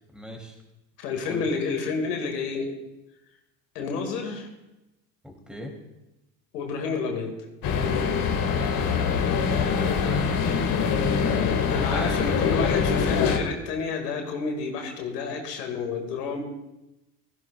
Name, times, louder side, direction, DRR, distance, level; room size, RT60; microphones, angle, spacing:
voice 1, 0.1-0.5 1.3-1.5 5.2-5.7 8.4-10.7 11.9-12.6, equal, ahead, 2 dB, 2.6 m, -39 dB
voice 2, 1.0-2.7 3.8-4.5 6.5-7.4 11.7-16.4, left 4 dB, 85° left, 3 dB, 2.0 m, -30 dB
sound 1, 7.6-13.4, left 6 dB, 45° left, 1.7 m, -24 dB
15.5 x 14.0 x 2.3 m, 0.96 s
hypercardioid pair, 75°, 46 cm